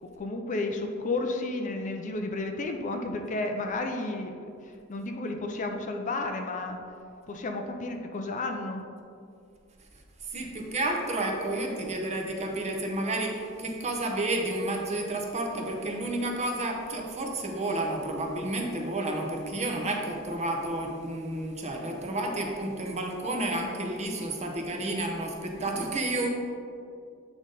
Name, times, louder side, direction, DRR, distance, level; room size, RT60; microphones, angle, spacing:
voice 1, 0.0-6.8 7.3-8.8, left 2 dB, 35° left, 4 dB, 0.4 m, -32 dB
voice 2, 10.3-26.3, right 2 dB, 30° right, 1 dB, 0.8 m, -31 dB
8.1 x 3.9 x 3.8 m, 2.4 s
head